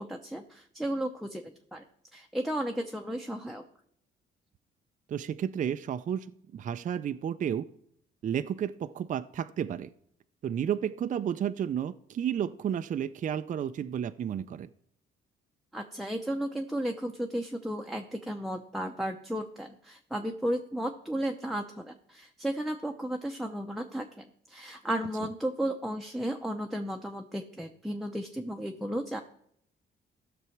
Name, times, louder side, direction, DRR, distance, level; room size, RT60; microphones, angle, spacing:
voice 1, 0.0-1.8 2.1-3.6 15.7-29.2, right 1 dB, ahead, 2 dB, 0.7 m, -34 dB
voice 2, 5.1-6.3 6.5-7.7 8.2-9.9 10.4-14.7, right 9 dB, 40° right, 11 dB, 0.4 m, -32 dB
15.0 x 6.0 x 4.6 m, 0.71 s
cardioid pair, 90°, 20 cm